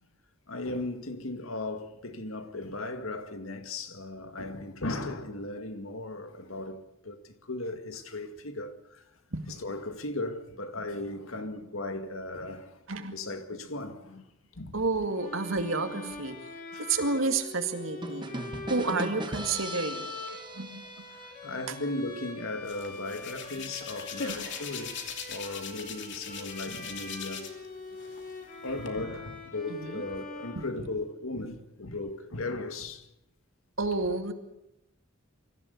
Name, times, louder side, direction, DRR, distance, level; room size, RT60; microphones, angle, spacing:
voice 1, 0.5-9.0 9.5-12.8 13.1-14.2 14.5-14.8 16.7-16.8 21.2-25.0 25.3-27.6 28.1-28.2 28.6-33.1, left 2 dB, 75° left, 2.1 m, -37 dB
voice 2, 12.9-13.2 14.7-16.3 16.8-18.4 18.7-20.1 20.5-20.8 24.2-24.4 29.7-30.0 30.6-30.7 33.8-34.3, right 3 dB, 70° right, 2.2 m, -30 dB
Bowed string instrument, 15.2-31.3, left 3 dB, 40° left, 4.5 m, -44 dB
sound 1, 18.0-21.7, right 2 dB, 20° right, 1.3 m, -39 dB
Hands, 22.7-27.7 28.0-28.9, left 6 dB, 55° left, 2.7 m, -40 dB
24.0 x 15.0 x 8.1 m
head